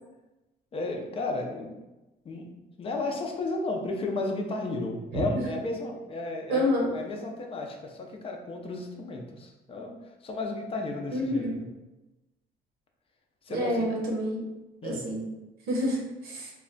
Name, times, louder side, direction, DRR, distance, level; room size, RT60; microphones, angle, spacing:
voice 1, 0.7-1.8 2.2-2.5 2.8-6.7 6.9-9.9 10.2-11.5 13.4-13.8 14.8-15.0, left 2 dB, 35° left, 2 dB, 0.5 m, -33 dB
voice 2, 6.5-6.9 11.1-11.5 13.5-14.4 14.8-15.3 15.7-16.5, equal, 70° right, -2 dB, 0.8 m, -28 dB
2.3 x 2.2 x 3.8 m, 1.0 s
cardioid pair, 110°, 17 cm